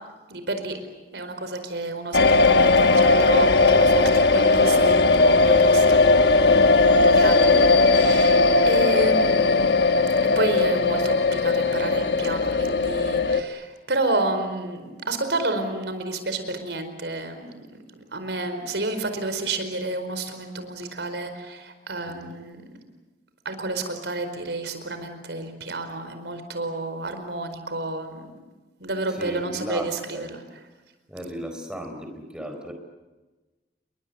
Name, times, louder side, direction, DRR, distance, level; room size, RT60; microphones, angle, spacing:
voice 1, 0.3-0.8 1.1-17.6 18.1-22.6 23.4-28.3 28.8-30.4, right 2 dB, 80° right, 8 dB, 4.7 m, -30 dB
sound 1, 2.1-13.4, left 3 dB, 70° left, 1.2 m, -18 dB
voice 2, 7.0-7.6 22.0-22.3 29.1-30.4 31.1-32.7, equal, 5° right, 5 dB, 4.3 m, -36 dB
29.5 x 22.5 x 8.1 m, 1.2 s
head